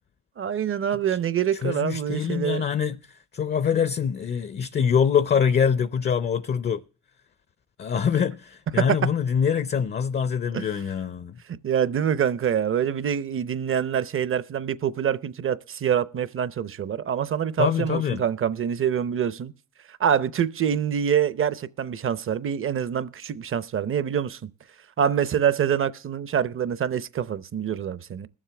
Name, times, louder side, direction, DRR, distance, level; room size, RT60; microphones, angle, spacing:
voice 1, 0.4-2.6 8.8-8.9 10.5-10.7 11.5-19.5 20.0-24.4 25.0-28.3, right 8 dB, 45° right, 0.7 m, -25 dB
voice 2, 1.5-6.8 7.8-11.3 17.6-18.2, left 7 dB, 35° left, 0.5 m, -24 dB
21.0 x 7.4 x 3.3 m
cardioid pair, 90°, 30 cm